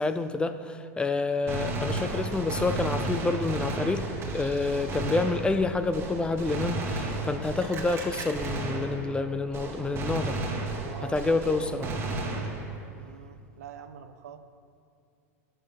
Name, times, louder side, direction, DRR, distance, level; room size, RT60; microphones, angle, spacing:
voice 1, 0.0-4.0 4.3-10.4 11.0-11.9, left 3 dB, 10° left, 10 dB, 0.5 m, -28 dB
Gunshot gunfire, 1.5-9.3 9.5-12.9, right 2 dB, 30° right, 1.7 m, -33 dB
voice 2, 10.8-11.2 12.8-14.4, right 7 dB, 80° right, 9 dB, 0.7 m, -45 dB
10.5 x 6.7 x 5.9 m, 2.4 s
hypercardioid pair, 100°, 8 cm